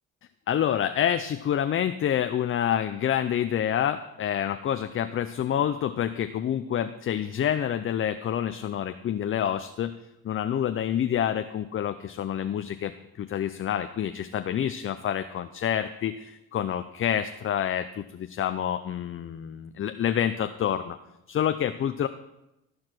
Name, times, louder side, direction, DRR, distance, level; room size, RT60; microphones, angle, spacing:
voice 1, 0.5-9.9 10.2-12.9 13.2-21.0 21.3-22.1, left 9 dB, 45° left, 9 dB, 0.5 m, -27 dB
13.5 x 4.8 x 6.0 m, 0.89 s
cardioid pair, 90°, 30 cm